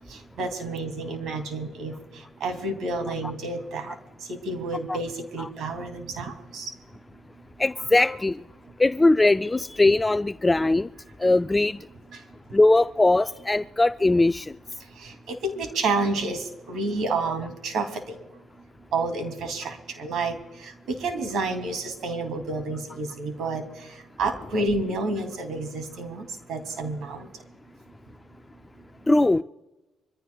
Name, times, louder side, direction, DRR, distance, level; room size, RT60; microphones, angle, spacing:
voice 1, 0.1-4.0 4.3-6.7 12.1-12.2 15.0-18.2 18.9-27.3, right 3 dB, 75° right, 2.7 m, -30 dB
voice 2, 7.6-8.4 8.8-10.9 11.2-11.8 12.5-14.5 29.1-29.4, left 2 dB, 15° left, 0.3 m, -20 dB
25.5 x 15.0 x 2.3 m
cardioid pair, 90°, 0 cm